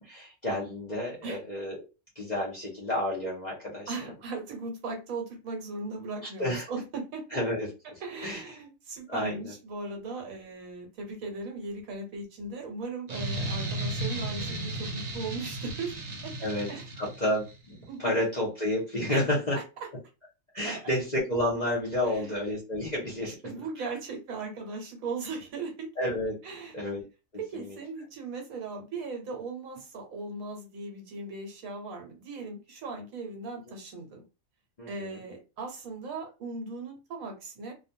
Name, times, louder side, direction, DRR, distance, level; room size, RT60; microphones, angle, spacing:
voice 1, 0.0-1.8 2.2-4.1 6.4-6.7 7.3-8.4 9.1-9.5 16.4-16.7 17.0-19.6 20.5-23.4 26.0-26.4 26.7-27.0 27.5-27.8 34.8-35.2, left 1 dB, 40° left, 0.7 m, -30 dB
voice 2, 3.9-7.2 8.0-16.3 16.7-16.9 17.9-18.2 19.1-19.2 20.6-20.9 22.0-22.4 23.3-25.9 26.4-26.7 27.4-34.2 34.9-37.7, right 3 dB, 85° right, 1.3 m, -38 dB
sound 1, 13.1-17.5, right 1 dB, 50° right, 0.5 m, -34 dB
2.4 x 2.2 x 2.7 m
omnidirectional pair, 1.4 m